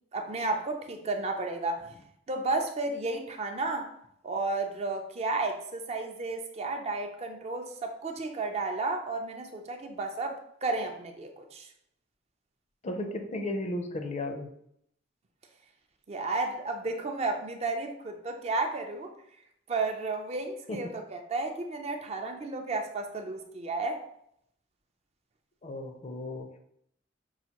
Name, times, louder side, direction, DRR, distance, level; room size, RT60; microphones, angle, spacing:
voice 1, 0.1-1.8 2.3-3.9 4.2-11.7 16.1-19.1 19.7-24.0, right 3 dB, 35° right, 4 dB, 0.4 m, -32 dB
voice 2, 12.8-14.5 20.7-20.9 25.6-26.6, left 1 dB, 35° left, 5 dB, 0.4 m, -35 dB
5.6 x 2.5 x 2.8 m, 0.73 s
head